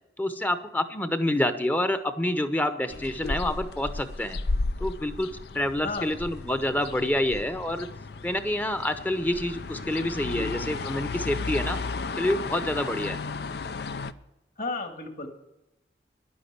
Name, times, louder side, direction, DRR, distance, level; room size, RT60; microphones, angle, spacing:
voice 1, 0.2-4.4 4.8-7.9 8.2-11.8 12.2-13.2, left 1 dB, 10° left, 10 dB, 0.8 m, -27 dB
sound 1, 2.9-14.1, left 3 dB, 70° left, 0.6 m, -34 dB
voice 2, 14.6-15.3, left 3 dB, 50° left, 5 dB, 2.0 m, -33 dB
11.0 x 9.7 x 8.1 m, 0.95 s
head